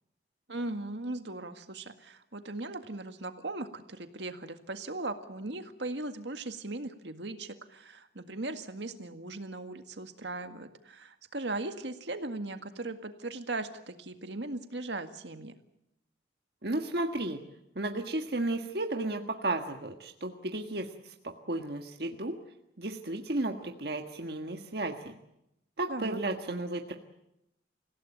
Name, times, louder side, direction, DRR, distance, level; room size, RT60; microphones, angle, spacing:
voice 1, 0.5-15.6 25.9-26.2, right 2 dB, 75° right, 7 dB, 1.9 m, -38 dB
voice 2, 16.6-17.4 17.7-22.3 22.8-25.1 25.8-26.9, right 2 dB, 60° right, 3 dB, 1.6 m, -33 dB
26.5 x 16.5 x 9.1 m, 0.84 s
head